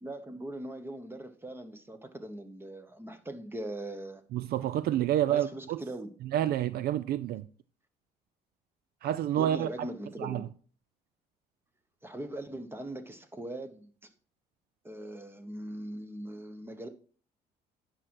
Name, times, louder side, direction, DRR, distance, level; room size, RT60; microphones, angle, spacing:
voice 1, 0.0-4.2 5.3-6.1 9.4-10.5 12.0-14.1 14.8-16.9, right 1 dB, 15° right, 1.1 m, -40 dB
voice 2, 4.3-5.8 6.3-7.4 9.0-9.7 10.2-10.5, right 11 dB, 65° right, 0.4 m, -28 dB
9.9 x 6.0 x 4.7 m
cardioid pair, 110°, 17 cm